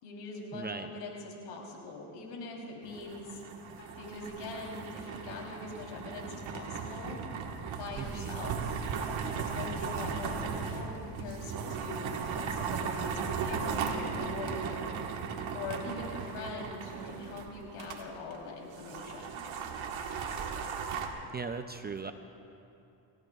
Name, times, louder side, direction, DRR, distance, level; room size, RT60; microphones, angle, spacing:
voice 1, 0.0-3.4 4.0-7.2 7.8-8.6 9.4-14.8 15.5-19.4, left 3 dB, 80° left, -1 dB, 3.6 m, -42 dB
voice 2, 0.5-0.9 8.0-8.4 21.3-22.1, right 5 dB, 20° right, 8 dB, 0.4 m, -38 dB
sound 1, 2.8-18.0 18.3-18.4 18.7-21.1, right 6 dB, 65° right, 1.5 m, -37 dB
sound 2, 3.8-8.9, left 1 dB, 55° left, 3.0 m, -55 dB
29.0 x 16.0 x 2.4 m, 2.8 s
cardioid pair, 120°, 50 cm